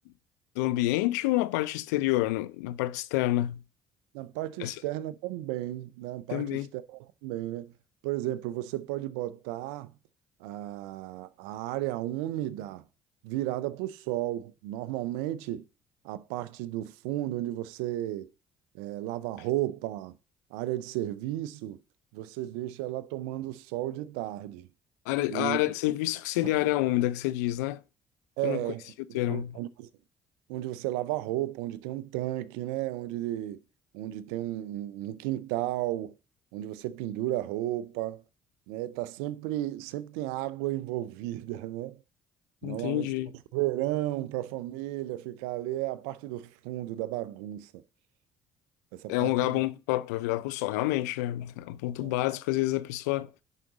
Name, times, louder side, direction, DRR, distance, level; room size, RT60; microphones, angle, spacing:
voice 1, 0.6-3.6 4.6-4.8 6.3-6.7 25.1-27.8 28.4-28.6 29.1-29.5 42.6-43.3 49.1-53.3, left 16 dB, 90° left, 0.5 m, -28 dB
voice 2, 4.1-7.7 8.0-9.9 10.4-12.9 13.2-15.7 16.0-18.3 18.7-20.1 20.5-21.8 22.1-24.7 25.3-25.6 28.4-29.9 30.5-33.6 33.9-36.1 36.5-38.2 38.7-42.0 42.6-43.1 43.5-47.8 48.9-49.6 52.0-52.1, right 15 dB, 85° right, 0.6 m, -33 dB
11.0 x 4.9 x 4.0 m
supercardioid pair, 65°, 9 cm